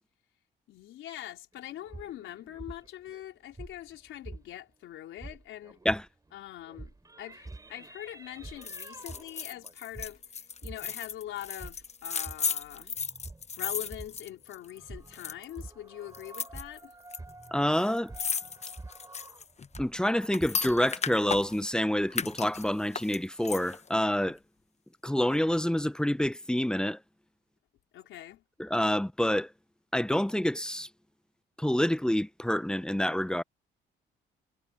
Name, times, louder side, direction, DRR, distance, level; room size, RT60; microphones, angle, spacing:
voice 1, 0.7-5.8 6.3-10.2 10.6-12.9 13.6-16.9 27.9-28.4, left 12 dB, 85° left, 4.5 m, -43 dB
sound 1, 1.5-4.7 5.1-20.9, right 2 dB, 20° right, 3.5 m, -48 dB
sound 2, 8.6-14.8 15.1-15.6 16.1-17.2 17.4-17.5 17.7-21.7 22.1-23.9 24.3-24.4, left 5 dB, 35° left, 1.0 m, -35 dB
voice 2, 17.5-18.1 19.8-24.4 25.0-27.0 28.6-29.5 29.9-30.9 31.6-33.4, left 1 dB, 5° left, 0.7 m, -27 dB
cardioid pair, 90°, 20 cm